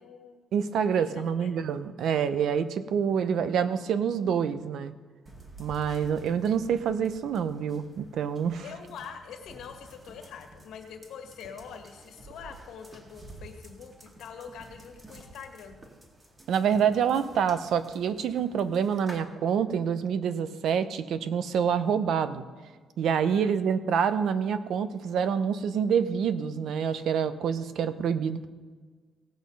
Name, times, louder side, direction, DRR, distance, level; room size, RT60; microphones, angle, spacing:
voice 1, 0.0-0.4 0.9-1.5 3.2-3.4 8.6-15.8 23.3-23.7, left 7 dB, 80° left, 4 dB, 1.7 m, -45 dB
voice 2, 0.5-4.9 5.6-8.6 16.5-22.4 23.0-28.5, right 7 dB, 75° right, 12 dB, 0.8 m, -27 dB
sound 1, 5.3-19.2, right 2 dB, 30° right, 2.2 m, -50 dB
17.5 x 6.4 x 5.4 m, 1.4 s
cardioid pair, 100°, 0 cm